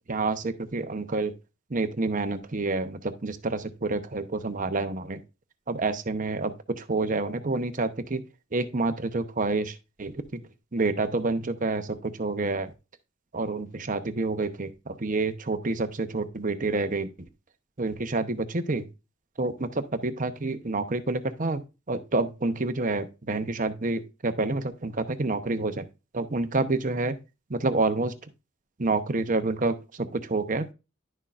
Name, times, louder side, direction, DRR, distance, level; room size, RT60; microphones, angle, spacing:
voice 1, 0.1-1.3 1.7-5.2 5.7-8.2 8.5-10.4 10.7-12.7 13.3-17.1 17.8-18.9 19.4-21.6 21.9-25.9 26.1-27.2 27.5-28.1 28.8-30.7, right 3 dB, 40° right, 9 dB, 0.9 m, -28 dB
11.0 x 6.4 x 2.5 m, 0.28 s
head